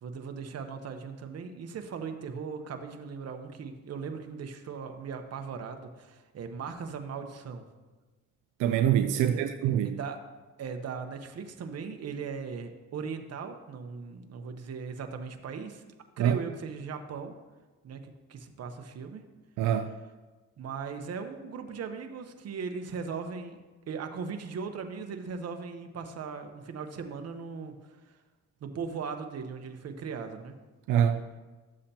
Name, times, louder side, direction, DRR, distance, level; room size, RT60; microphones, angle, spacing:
voice 1, 0.0-7.6 9.1-9.5 10.0-10.2 10.6-15.8 16.2-17.3 17.8-18.0 18.3-19.2 20.6-23.6 23.9-27.7 28.6-30.5, right 5 dB, 55° right, 6 dB, 1.0 m, -38 dB
voice 2, 8.6-10.0 16.2-16.4 19.6-19.9 30.9-31.2, right 9 dB, 90° right, 8 dB, 0.5 m, -25 dB
13.0 x 7.5 x 2.9 m, 1.2 s
cardioid pair, 90°, 30 cm